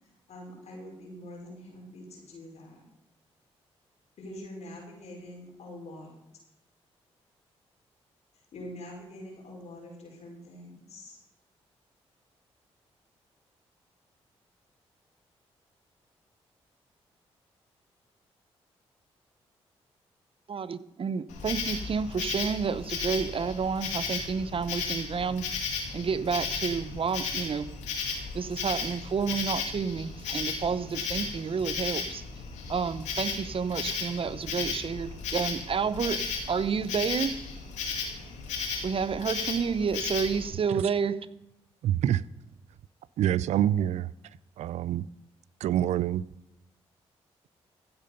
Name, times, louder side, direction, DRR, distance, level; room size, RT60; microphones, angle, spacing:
voice 1, 0.3-2.8 4.2-6.2 8.5-11.2, left 1 dB, 70° left, 5.7 m, -44 dB
voice 2, 20.5-25.5 25.9-27.7 28.3-32.2 32.7-36.2 36.5-37.3 38.8-41.2, right 6 dB, 50° right, 0.8 m, -30 dB
Insect, 21.3-40.5, left 5 dB, 90° left, 2.5 m, -35 dB
voice 3, 41.8-42.2 43.2-44.1 44.6-45.0 45.6-46.2, right 11 dB, 80° right, 0.5 m, -26 dB
15.5 x 8.9 x 5.6 m
supercardioid pair, 55°, 12 cm